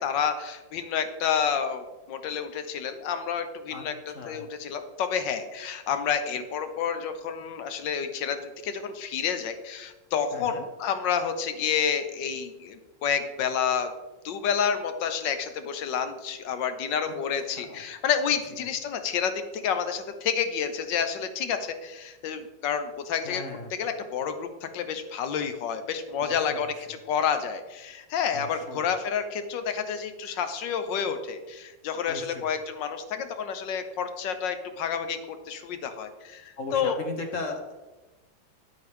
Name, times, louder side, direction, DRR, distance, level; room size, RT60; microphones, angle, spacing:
voice 1, 0.0-13.9 14.2-23.4 23.7-37.0, left 7 dB, 75° left, 9 dB, 1.5 m, -29 dB
voice 2, 4.1-4.5 10.3-10.6 17.0-17.1 17.5-17.8 23.2-23.7 26.2-26.8 28.3-28.9 32.1-32.5 36.6-37.7, left 3 dB, 50° left, 3 dB, 1.2 m, -37 dB
11.0 x 8.2 x 3.4 m, 1.1 s
omnidirectional pair, 2.1 m